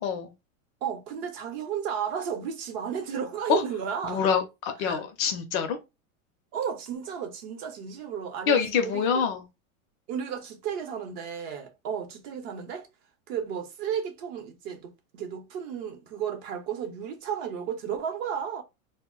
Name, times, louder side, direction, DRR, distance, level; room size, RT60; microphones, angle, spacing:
voice 1, 0.0-0.3 3.5-3.6 4.0-5.8 8.5-9.4, left 6 dB, 35° left, 0.5 m, -26 dB
voice 2, 0.8-4.2 4.8-5.0 6.5-9.3 10.1-12.9 13.3-18.6, right 8 dB, 45° right, 0.7 m, -33 dB
2.1 x 2.0 x 3.6 m
supercardioid pair, 140°, 43 cm